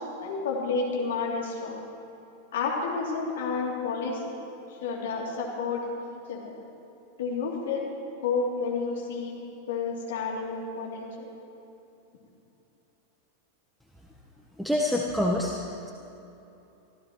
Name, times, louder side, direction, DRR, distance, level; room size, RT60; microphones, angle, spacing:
voice 1, 0.0-1.8 2.5-4.4 4.8-6.5 7.2-7.9 8.2-11.3, left 4 dB, 60° left, -2 dB, 2.9 m, -30 dB
voice 2, 14.6-15.5, left 1 dB, ahead, -1 dB, 1.1 m, -25 dB
24.0 x 15.0 x 3.1 m, 2.9 s
figure-of-eight pair, 90°, 0 cm